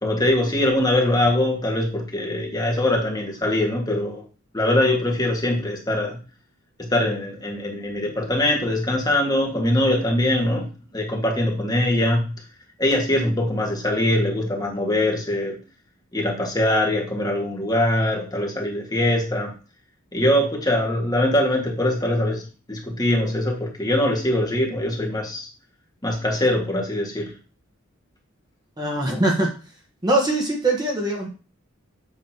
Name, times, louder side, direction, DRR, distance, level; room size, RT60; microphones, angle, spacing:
voice 1, 0.0-4.2 4.5-6.2 6.8-10.7 10.9-12.2 12.8-15.6 16.1-19.5 20.1-25.5 26.0-27.3, left 1 dB, 20° left, -1 dB, 1.6 m, -22 dB
voice 2, 28.8-29.5 30.0-31.3, right 2 dB, 20° right, 0 dB, 1.2 m, -22 dB
8.3 x 3.2 x 5.9 m, 0.35 s
head